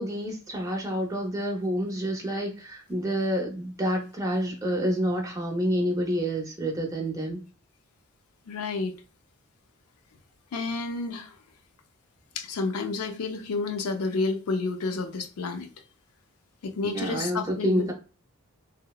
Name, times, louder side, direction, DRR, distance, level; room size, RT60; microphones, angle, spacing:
voice 1, 0.0-7.4 16.8-17.9, equal, 15° right, 0.4 m, -28 dB
voice 2, 8.5-8.9 10.5-11.3 12.4-15.7 16.6-17.9, left 3 dB, 85° left, 0.4 m, -30 dB
2.8 x 2.0 x 2.2 m
head